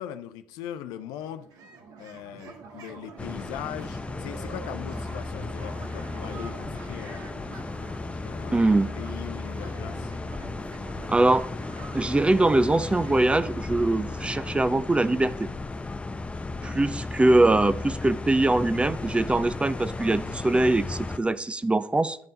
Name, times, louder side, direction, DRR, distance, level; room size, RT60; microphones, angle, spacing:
voice 1, 0.0-1.5 2.0-7.2 8.2-8.7 9.0-10.1 16.4-16.9, left 10 dB, 70° left, 0.6 m, -40 dB
sound 1, 0.7-0.8 1.0-15.6, right 4 dB, 65° right, 1.2 m, -46 dB
sound 2, 3.2-21.2, left 3 dB, 15° left, 0.7 m, -35 dB
voice 2, 8.5-8.9 11.1-11.5 11.9-15.5 16.6-22.2, right 2 dB, 15° right, 0.5 m, -22 dB
10.5 x 5.5 x 4.0 m
hypercardioid pair, 55°, 7 cm